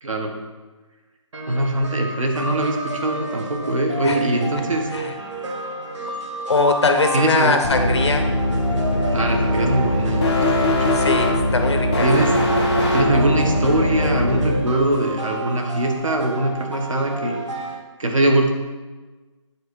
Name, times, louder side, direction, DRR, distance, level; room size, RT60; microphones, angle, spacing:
voice 1, 0.0-0.3 1.5-4.9 7.1-7.6 9.1-11.0 12.0-12.4 12.9-17.4 18.0-18.5, right 1 dB, 85° right, 3 dB, 1.3 m, -22 dB
sound 1, 1.3-17.7, right 1 dB, 65° right, 1.2 m, -31 dB
voice 2, 6.5-8.3 10.9-12.1, left 3 dB, 55° left, 5 dB, 0.9 m, -21 dB
sound 2, 7.6-14.5, left 1 dB, 15° left, 0.6 m, -21 dB
9.2 x 3.4 x 4.6 m, 1.3 s
hypercardioid pair, 175°, 16 cm